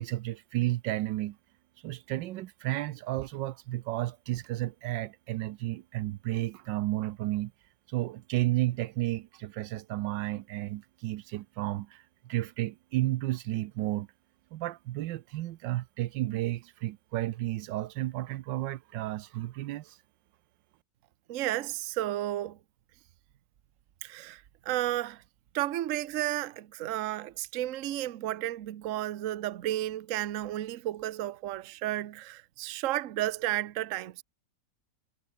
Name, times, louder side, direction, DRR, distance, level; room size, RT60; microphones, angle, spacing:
voice 1, 0.0-1.4 1.8-7.5 7.9-14.1 14.5-20.0, right 15 dB, 85° right, 1.3 m, -32 dB
voice 2, 21.3-22.6 24.0-25.2 25.5-34.2, right 14 dB, 55° right, 1.0 m, -32 dB
omnidirectional pair, 2.0 m